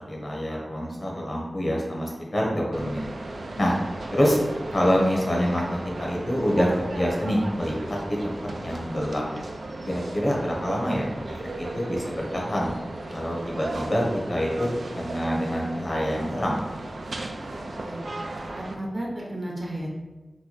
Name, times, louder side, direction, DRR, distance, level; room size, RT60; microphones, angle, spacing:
voice 1, 0.1-3.0 3.6-3.8 4.1-4.4 4.7-5.6 6.0-8.0 8.2-9.2 9.8-12.7 13.1-14.0 14.3-14.7 15.0-16.6, equal, 40° left, -2 dB, 0.8 m, -26 dB
sound 1, 2.7-18.7, right 2 dB, 70° right, 0.4 m, -36 dB
voice 2, 17.5-18.0 18.5-19.9, right 1 dB, 45° right, -2 dB, 0.8 m, -33 dB
3.0 x 2.2 x 4.0 m, 1.2 s
wide cardioid pair, 70°, 0 cm